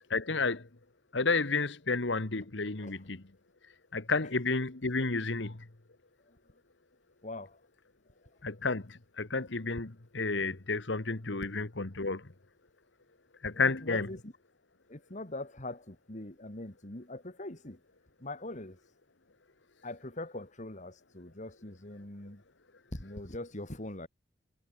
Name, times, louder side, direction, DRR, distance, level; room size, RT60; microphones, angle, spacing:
voice 1, 0.1-0.7 1.1-3.2 3.9-5.6 8.4-12.3 13.4-14.1, left 3 dB, 70° left, 1.6 m, -31 dB
voice 2, 7.2-7.6 13.5-14.3 14.9-17.8 18.2-18.8 19.8-22.4 22.9-24.1, left 2 dB, 40° left, 2.7 m, -42 dB
head